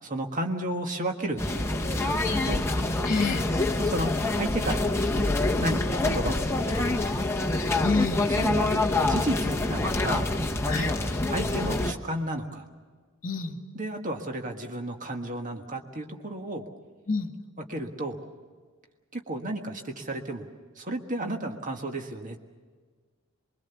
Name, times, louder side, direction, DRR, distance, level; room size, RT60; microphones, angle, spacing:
voice 1, 0.0-2.6 3.8-4.9 5.1-7.2 8.2-8.7 9.0-10.3 11.3-12.7 13.7-16.6 17.7-18.2 19.1-20.5 20.7-22.4, right 1 dB, 35° right, 3 dB, 1.6 m, -33 dB
sound 1, 1.4-11.9, left 2 dB, 10° left, 1.0 m, -26 dB
voice 2, 3.0-3.5 7.8-8.3 10.7-10.9 13.2-13.6 17.1-17.3, left 4 dB, 40° left, 5 dB, 2.1 m, -27 dB
24.0 x 23.0 x 7.0 m, 1.5 s
head